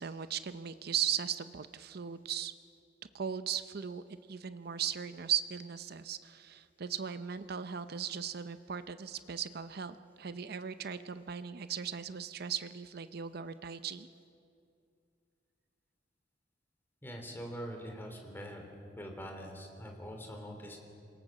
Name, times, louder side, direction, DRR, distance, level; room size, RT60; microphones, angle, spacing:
voice 1, 0.0-2.5 3.1-4.0 4.3-14.1, right 8 dB, 60° right, 12 dB, 0.6 m, -37 dB
voice 2, 17.0-18.6 19.0-20.8, equal, 10° left, 2 dB, 3.3 m, -43 dB
26.5 x 18.0 x 7.5 m, 2.5 s
head